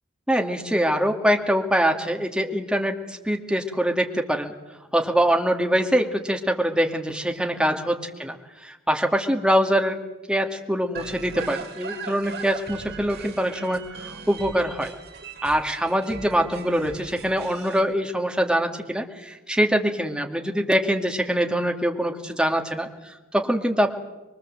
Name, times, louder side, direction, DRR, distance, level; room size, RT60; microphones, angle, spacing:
voice 1, 0.3-4.5 4.9-8.3 8.6-10.0 10.3-14.9 15.4-23.9, equal, 5° right, 3 dB, 2.4 m, -24 dB
sound 1, 10.9-17.8, right 5 dB, 50° right, 2.9 m, -39 dB
24.0 x 23.5 x 7.9 m, 1.0 s
head